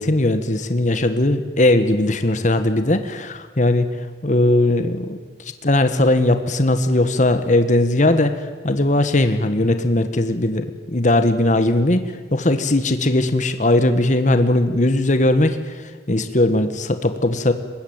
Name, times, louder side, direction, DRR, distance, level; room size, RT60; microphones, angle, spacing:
voice 1, 0.0-3.9 4.2-17.5, left 1 dB, 45° left, 9 dB, 1.5 m, -19 dB
24.0 x 21.0 x 9.0 m, 1.4 s
head